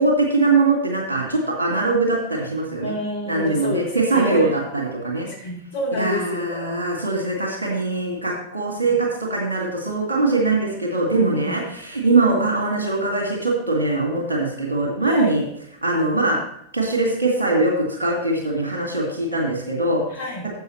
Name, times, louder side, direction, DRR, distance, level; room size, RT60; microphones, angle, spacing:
voice 1, 0.0-2.9 3.3-5.3 6.0-15.4 15.8-16.4 16.7-20.0, right 2 dB, 70° right, 0 dB, 2.1 m, -22 dB
voice 2, 2.8-4.6 5.3-6.8 11.2-11.6 15.0-15.3 20.1-20.5, left 1 dB, 60° left, -3 dB, 2.6 m, -29 dB
11.5 x 7.8 x 3.1 m, 0.67 s
figure-of-eight pair, 90°, 0 cm